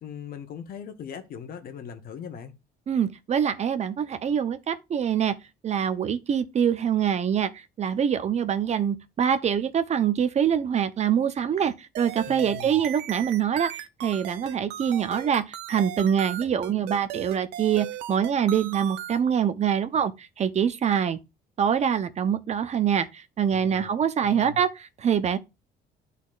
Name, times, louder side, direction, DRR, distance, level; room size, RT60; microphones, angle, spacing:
voice 1, 0.0-2.5 12.3-12.8 23.5-24.6, left 7 dB, 60° left, 1.2 m, -40 dB
voice 2, 2.9-5.3 5.6-21.2 21.6-25.4, right 8 dB, 40° right, 0.7 m, -25 dB
sound 1, 12.0-19.2, right 12 dB, 85° right, 0.7 m, -37 dB
12.0 x 4.1 x 2.4 m
cardioid pair, 110°, 17 cm